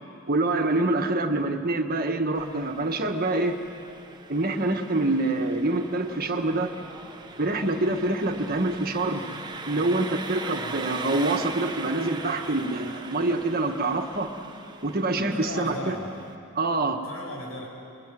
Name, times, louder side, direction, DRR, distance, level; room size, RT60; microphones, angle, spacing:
voice 1, 0.3-3.6 4.3-6.7 7.4-9.2 9.7-14.3 14.8-15.9 16.5-17.0, right 2 dB, 45° right, 5 dB, 1.6 m, -26 dB
Engine, 2.3-16.4, right 3 dB, 20° right, 1.2 m, -40 dB
voice 2, 15.2-16.1 16.9-17.7, equal, 90° left, 0 dB, 6.8 m, -36 dB
28.5 x 22.5 x 9.2 m, 2.6 s
head